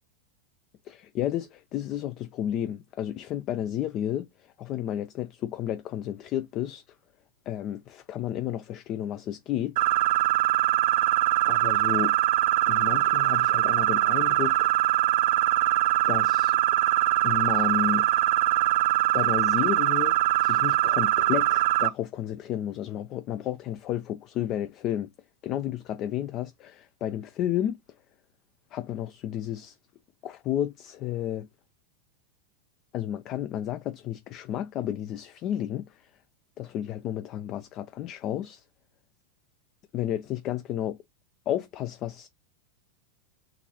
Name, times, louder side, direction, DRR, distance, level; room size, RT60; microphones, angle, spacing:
voice 1, 0.8-6.8 7.5-9.8 11.5-12.1 12.7-14.7 16.1-16.6 17.2-18.1 19.1-25.1 25.4-27.8 28.7-29.8 30.2-31.5 32.9-36.1 36.6-38.6 39.9-41.0 41.5-42.3, left 11 dB, 40° left, 0.4 m, -32 dB
sound 1, 9.8-21.9, right 15 dB, 65° right, 0.4 m, -23 dB
3.9 x 2.5 x 2.8 m
hypercardioid pair, 110°, 0 cm